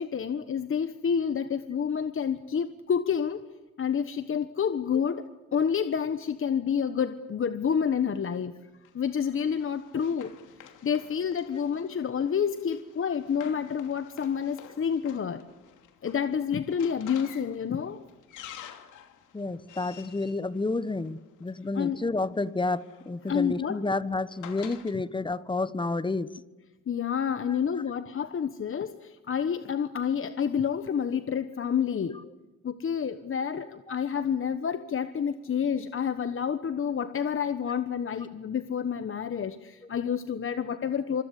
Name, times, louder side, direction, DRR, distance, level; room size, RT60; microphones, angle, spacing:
voice 1, 0.0-3.5 3.8-5.2 5.5-8.5 8.9-10.3 10.8-15.4 16.0-18.0 21.7-22.0 23.3-23.8 26.9-32.2 32.6-41.2, left 7 dB, 45° left, 1.3 m, -29 dB
Run, 8.8-21.5 22.5-25.0, left 9 dB, 85° left, 2.9 m, -50 dB
voice 2, 19.3-26.3, left 3 dB, 15° left, 1.2 m, -30 dB
26.0 x 25.0 x 8.4 m
cardioid pair, 90°, 30 cm